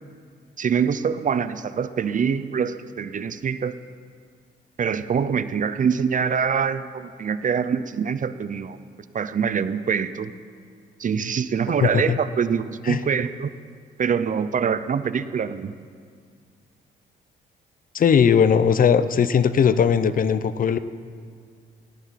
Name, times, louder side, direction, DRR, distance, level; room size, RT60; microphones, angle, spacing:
voice 1, 0.6-3.7 4.8-8.8 9.1-10.3 11.0-13.5 14.0-15.7, right 6 dB, 40° right, 13 dB, 0.6 m, -24 dB
voice 2, 11.8-12.2 12.8-13.0 17.9-20.8, left 7 dB, 45° left, 14 dB, 0.6 m, -19 dB
17.5 x 14.5 x 4.2 m, 2.1 s
cardioid pair, 90°, 20 cm